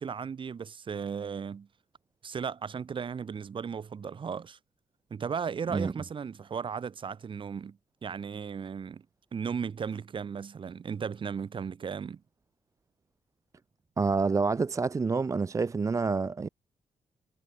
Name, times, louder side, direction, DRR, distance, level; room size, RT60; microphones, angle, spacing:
voice 1, 0.0-1.7 2.2-4.6 5.1-9.1 9.3-12.2, right 6 dB, 40° right, 1.0 m, -36 dB
voice 2, 14.0-16.5, right 4 dB, 25° right, 0.5 m, -27 dB
cardioid pair, 115°, 13 cm